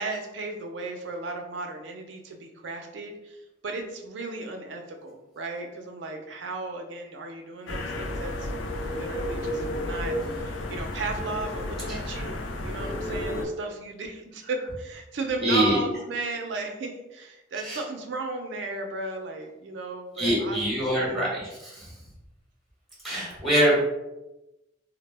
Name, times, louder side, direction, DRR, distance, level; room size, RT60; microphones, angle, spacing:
voice 1, 0.0-3.4 3.6-8.5 8.9-21.2 23.6-23.8, right 3 dB, 65° right, 3 dB, 0.4 m, -35 dB
sound 1, 7.7-13.5, left 1 dB, 80° left, 0.4 m, -32 dB
voice 2, 15.4-15.8 17.6-17.8 20.2-21.9 23.0-23.8, equal, ahead, -8 dB, 0.9 m, -24 dB
2.0 x 2.0 x 3.3 m, 0.97 s
head